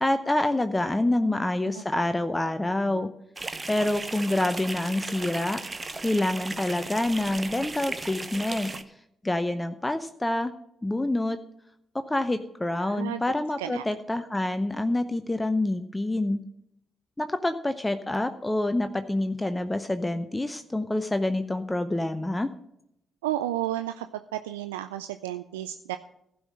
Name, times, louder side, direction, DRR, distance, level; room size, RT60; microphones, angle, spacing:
voice 1, 0.0-3.1 3.7-5.6 6.0-8.7 9.2-10.5 10.8-11.4 11.9-16.4 17.2-22.5, left 1 dB, 15° left, 9 dB, 0.8 m, -27 dB
sound 1, 3.4-8.8, right 3 dB, 25° right, 0.9 m, -36 dB
voice 2, 12.8-13.2 13.6-13.8 23.2-24.1 24.3-26.0, right 13 dB, 80° right, 10 dB, 0.3 m, -32 dB
15.5 x 5.7 x 6.3 m, 0.76 s
figure-of-eight pair, 40°, 0 cm